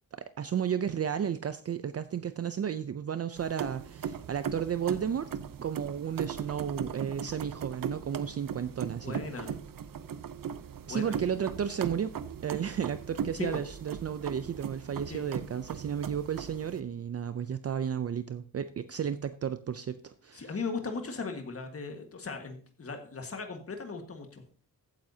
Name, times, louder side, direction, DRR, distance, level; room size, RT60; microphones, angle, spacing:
voice 1, 0.1-5.3 5.6-9.2 10.9-12.2 12.4-20.6, right 8 dB, 50° right, 0.5 m, -33 dB
sound 1, 3.4-16.8, right 8 dB, 80° right, 0.7 m, -39 dB
voice 2, 9.0-9.5 10.9-11.2 13.4-13.6 15.1-15.2 20.3-24.4, left 4 dB, 45° left, 1.6 m, -37 dB
14.5 x 9.2 x 2.8 m
wide cardioid pair, 165°, 33 cm